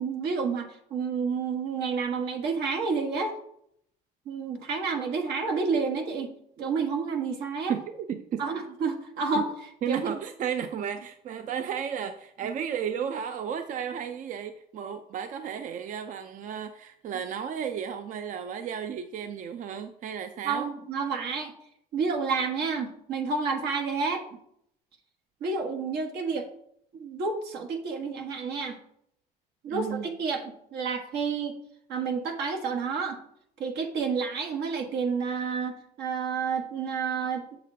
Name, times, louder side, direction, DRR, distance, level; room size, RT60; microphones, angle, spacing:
voice 1, 0.0-3.3 4.3-7.7 8.4-9.5 9.9-10.1 12.4-12.5 20.4-21.5 21.9-24.2 25.4-26.4 27.0-28.8 29.6-31.6 31.9-33.2 33.6-37.6, right 5 dB, 80° right, 3 dB, 1.3 m, -30 dB
voice 2, 7.7-8.4 9.8-20.7 29.7-30.1, right 8 dB, 50° right, 8 dB, 0.5 m, -33 dB
7.4 x 6.8 x 2.8 m, 0.71 s
cardioid pair, 110°, 17 cm